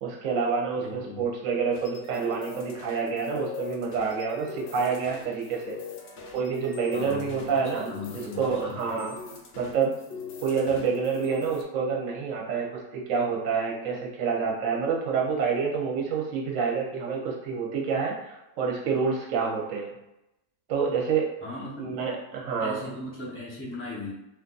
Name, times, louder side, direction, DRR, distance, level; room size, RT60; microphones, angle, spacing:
voice 1, 0.0-5.8 6.3-9.1 9.6-9.9 10.4-19.9 20.7-21.3 21.8-22.9, right 5 dB, 65° right, -2 dB, 1.0 m, -28 dB
voice 2, 0.8-1.2 6.9-8.9 21.4-22.0 22.6-24.1, left 3 dB, 15° left, -5 dB, 0.5 m, -38 dB
sound 1, 1.7-11.6, left 5 dB, 75° left, 0.5 m, -42 dB
2.5 x 2.5 x 3.8 m, 0.92 s
omnidirectional pair, 1.7 m